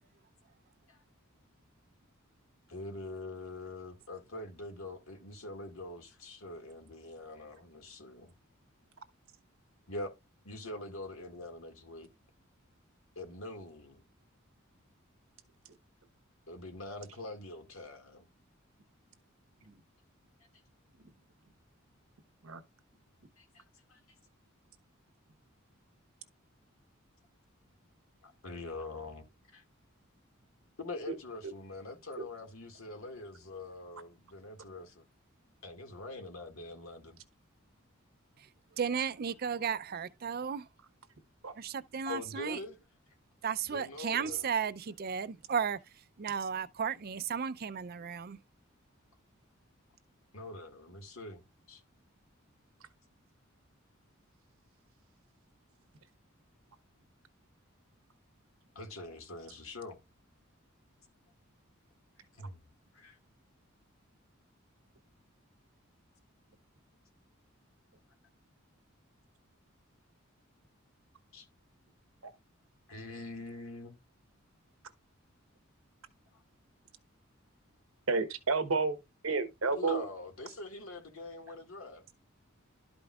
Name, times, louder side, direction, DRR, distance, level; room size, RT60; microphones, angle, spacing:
voice 1, 2.7-8.3 9.9-10.2 10.4-12.1 13.2-14.0 16.5-18.3 23.4-23.6 23.9-24.0 28.2-29.6 30.8-35.0 35.6-37.2 42.1-42.8 43.6-44.5 50.3-51.4 51.7-51.8 58.8-60.0 62.3-62.6 62.9-63.2 71.3-71.5 72.9-74.0 76.3-76.4 79.7-82.0, left 2 dB, 85° left, 1.9 m, -44 dB
voice 2, 38.8-40.7 41.6-42.6 43.4-45.8 46.2-48.4, right 7 dB, 45° right, 0.5 m, -34 dB
voice 3, 78.1-79.0 79.2-80.0, right 4 dB, 85° right, 1.1 m, -30 dB
12.0 x 5.2 x 2.4 m
head